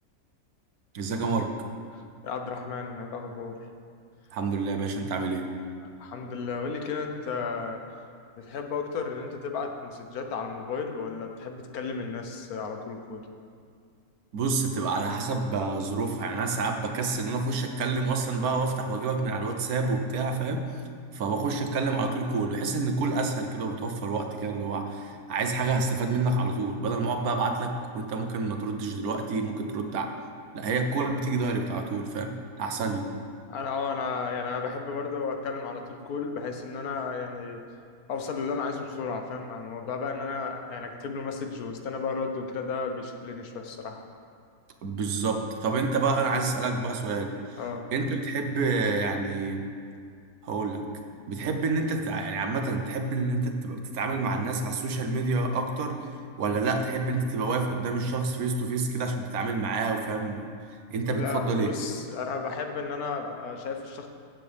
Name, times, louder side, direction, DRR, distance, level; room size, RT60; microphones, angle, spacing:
voice 1, 0.9-1.6 4.3-5.5 14.3-20.7 21.1-30.1 30.5-33.2 44.8-47.6 47.9-49.7 50.4-50.9 51.3-56.0 56.4-60.4 60.9-61.7, right 3 dB, 75° right, 5 dB, 1.4 m, -28 dB
voice 2, 1.9-3.6 6.0-7.8 8.4-13.3 33.5-37.6 38.1-44.0 47.6-47.8 61.1-64.1, left 5 dB, 75° left, 4 dB, 1.4 m, -33 dB
16.5 x 7.6 x 3.4 m, 2.2 s
omnidirectional pair, 1.6 m